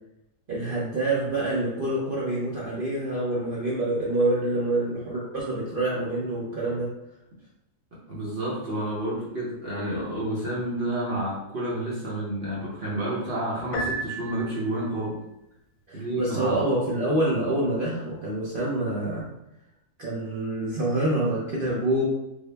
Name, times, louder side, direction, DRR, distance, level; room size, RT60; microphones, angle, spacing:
voice 1, 0.5-6.9 15.9-19.3 20.0-22.0, right 1 dB, 65° right, -6 dB, 0.5 m, -26 dB
voice 2, 8.1-15.2 15.9-16.6, right 1 dB, 50° right, -6 dB, 0.8 m, -30 dB
Piano, 13.7-15.0, right 2 dB, 65° left, 1.0 m, -33 dB
3.7 x 2.0 x 3.3 m, 0.87 s
omnidirectional pair, 1.7 m